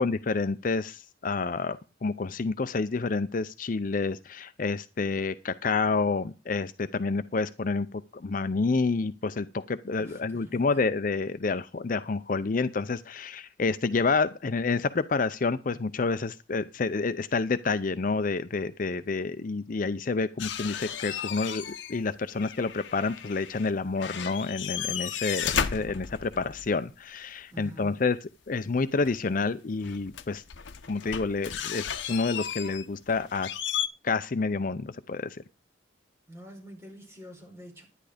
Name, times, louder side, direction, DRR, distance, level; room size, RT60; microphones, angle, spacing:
voice 1, 0.0-1.8 2.0-28.2 28.5-30.4 30.9-33.5 34.0-35.4, left 4 dB, 45° left, 0.5 m, -29 dB
voice 2, 10.0-10.6 27.5-28.1 36.3-37.8, right 1 dB, 15° right, 4.8 m, -46 dB
sound 1, 20.4-22.0 22.3-23.7 24.0-26.8 29.1-29.2 29.8-33.9, left 8 dB, 75° left, 0.9 m, -34 dB
11.0 x 10.5 x 5.0 m
head